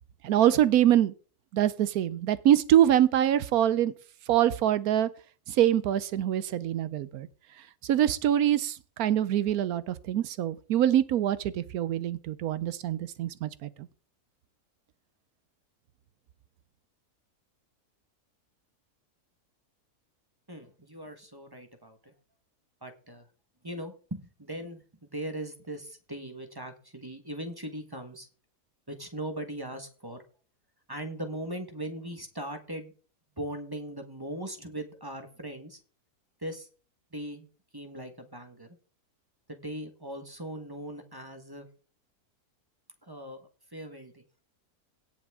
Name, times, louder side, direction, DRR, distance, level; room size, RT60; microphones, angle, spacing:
voice 1, 0.2-1.1 1.5-3.9 4.3-5.1 5.5-7.3 7.8-13.9, right 11 dB, 70° right, 17 dB, 1.1 m, -24 dB
voice 2, 20.5-22.1 22.8-23.3 23.6-28.3 28.9-30.2 30.9-32.9 33.4-35.8 36.4-36.7 37.1-37.5 37.7-38.8 39.5-41.7 43.0-44.2, right 1 dB, 15° right, 6 dB, 1.2 m, -39 dB
17.5 x 6.0 x 3.6 m, 0.39 s
omnidirectional pair, 1.7 m